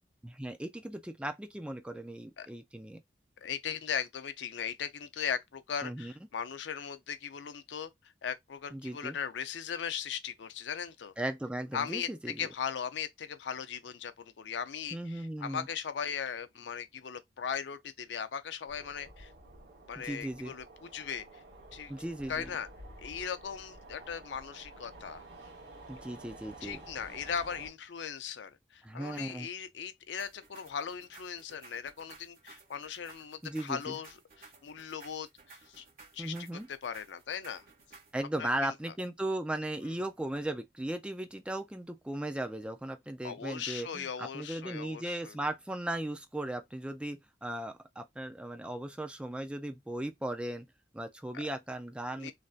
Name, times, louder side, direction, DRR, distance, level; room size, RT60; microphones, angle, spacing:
voice 1, 0.2-3.0 5.8-6.1 8.7-9.2 11.2-12.5 14.9-15.7 19.9-20.5 21.9-22.5 25.9-26.8 28.8-29.5 33.4-34.0 36.2-36.7 38.1-50.7 50.9-52.3, right 1 dB, 5° right, 0.3 m, -37 dB
voice 2, 3.4-7.9 8.2-11.1 11.7-12.1 12.4-19.3 19.9-21.2 21.7-21.9 22.3-22.7 23.0-25.3 26.6-35.8 36.1-37.6 38.4-38.7 39.8-39.9 43.2-45.4 51.3-51.4 52.1-52.3, left 7 dB, 90° left, 0.5 m, -38 dB
sound 1, 18.7-27.7, right 2 dB, 85° right, 1.4 m, -51 dB
sound 2, 30.1-38.2, right 4 dB, 50° right, 1.5 m, -56 dB
3.2 x 2.6 x 2.4 m
head